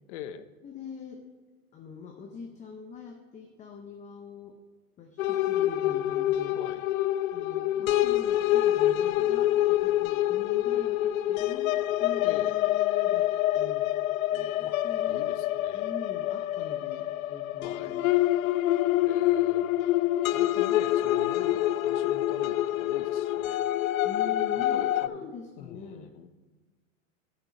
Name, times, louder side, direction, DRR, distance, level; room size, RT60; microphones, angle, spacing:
voice 1, 0.1-0.5 6.5-6.8 12.2-12.6 14.6-14.8 15.0-15.9 17.6-18.0 19.0-19.7 20.3-23.6 24.5-25.3 25.6-26.3, left 9 dB, 60° left, 12 dB, 0.9 m, -43 dB
voice 2, 0.6-1.3 1.7-4.6 5.0-6.6 7.3-13.9 14.3-15.3 15.7-18.1 24.0-26.2, left 5 dB, 20° left, 4 dB, 0.7 m, -43 dB
sound 1, 5.2-25.1, left 14 dB, 85° left, 0.5 m, -26 dB
13.0 x 6.0 x 5.1 m, 1.3 s
supercardioid pair, 140°, 40 cm